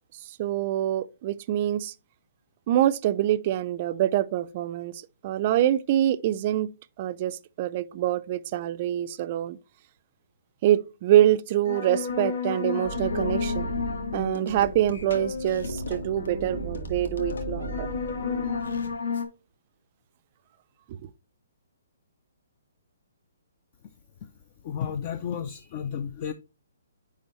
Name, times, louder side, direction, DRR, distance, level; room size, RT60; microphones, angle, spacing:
voice 1, 0.4-1.9 2.7-6.7 7.0-9.6 10.6-13.7 14.1-17.9 20.9-21.0, right 12 dB, 35° right, 0.4 m, -25 dB
sound 1, 11.5-19.3, left 3 dB, 85° left, 1.7 m, -31 dB
voice 2, 24.6-26.3, left 8 dB, 35° left, 0.4 m, -32 dB
9.7 x 3.4 x 3.0 m
hypercardioid pair, 160°, 0 cm